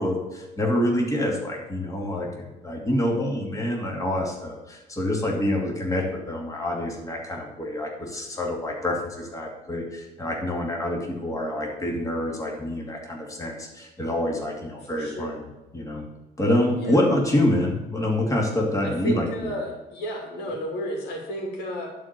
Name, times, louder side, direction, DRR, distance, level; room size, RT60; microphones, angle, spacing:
voice 1, 0.0-15.4 15.7-16.1 16.4-19.5, left 1 dB, 20° left, 0 dB, 2.5 m, -26 dB
voice 2, 14.9-15.4 16.8-17.0 18.8-21.9, equal, 85° left, 1 dB, 2.8 m, -32 dB
11.0 x 4.6 x 6.9 m, 1.1 s
cardioid pair, 110°, 17 cm